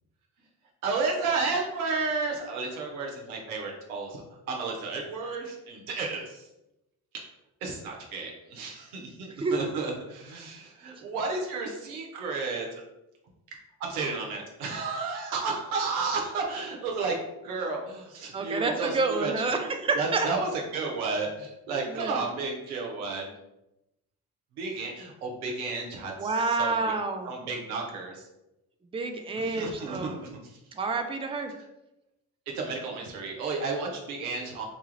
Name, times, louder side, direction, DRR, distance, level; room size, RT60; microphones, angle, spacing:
voice 1, 0.8-4.2 4.5-6.5 7.1-7.3 7.6-12.7 13.8-19.3 20.0-23.3 24.6-26.9 27.3-28.3 29.3-30.6 32.5-34.6, right 4 dB, 85° right, 0 dB, 0.7 m, -32 dB
voice 2, 9.2-9.7 10.9-11.0 18.3-20.3 20.8-20.9 21.9-22.2 26.2-27.3 28.9-30.2 30.7-31.5, right 3 dB, 15° right, 5 dB, 0.5 m, -29 dB
3.9 x 2.3 x 3.1 m, 0.91 s
hypercardioid pair, 40°, 43 cm